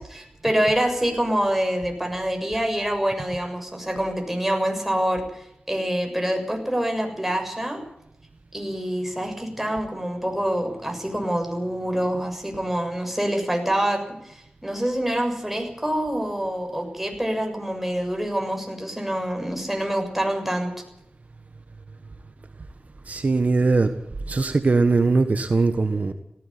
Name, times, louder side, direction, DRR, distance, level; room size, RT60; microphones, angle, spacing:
voice 1, 0.0-7.8 8.5-14.0 14.3-20.7, right 1 dB, 5° right, 3 dB, 6.9 m, -26 dB
voice 2, 23.1-23.9 24.3-26.1, right 3 dB, 55° right, 8 dB, 1.5 m, -20 dB
18.0 x 16.5 x 10.0 m, 0.82 s
wide cardioid pair, 60°, 3 cm